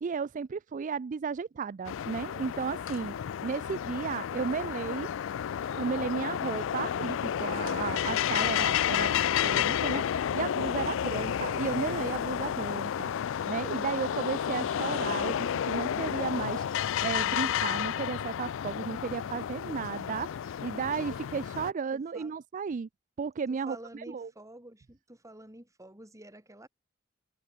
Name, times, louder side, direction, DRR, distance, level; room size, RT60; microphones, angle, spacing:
voice 1, 0.0-3.1 3.4-5.1 5.7-22.9 23.2-24.3, right 5 dB, 40° right, 0.4 m, -34 dB
sound 1, 1.8-21.7, left 9 dB, 70° left, 0.4 m, -31 dB
voice 2, 19.1-19.5 21.9-22.3 23.5-26.7, right 1 dB, 15° right, 5.2 m, -50 dB
head